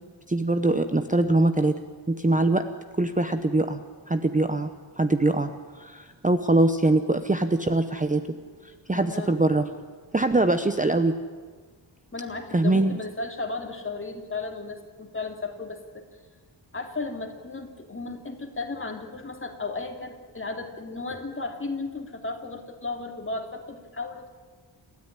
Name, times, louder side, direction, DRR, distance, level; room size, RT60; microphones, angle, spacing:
voice 1, 0.3-1.7 2.1-2.6 3.0-4.7 5.0-5.5 5.8-8.2 8.9-9.7 10.1-11.1 12.5-13.0, right 2 dB, 15° right, 9 dB, 0.9 m, -22 dB
voice 2, 8.9-9.6 12.1-16.0 16.7-24.3, left 3 dB, 25° left, 4 dB, 2.8 m, -35 dB
29.0 x 13.5 x 10.0 m, 1.5 s
wide cardioid pair, 140°, 45 cm